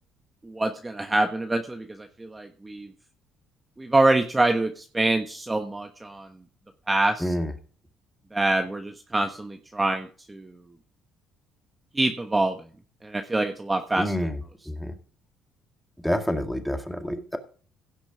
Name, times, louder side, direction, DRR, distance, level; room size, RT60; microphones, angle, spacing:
voice 1, 0.4-2.9 3.8-6.3 6.9-7.3 8.3-10.5 11.9-12.6 13.0-14.1, right 2 dB, 20° right, 5 dB, 1.3 m, -25 dB
voice 2, 7.2-7.5 14.0-14.4 14.7-14.9 16.0-17.4, equal, 5° left, 6 dB, 2.1 m, -28 dB
16.5 x 6.0 x 5.0 m, 0.40 s
supercardioid pair, 70°, 0 cm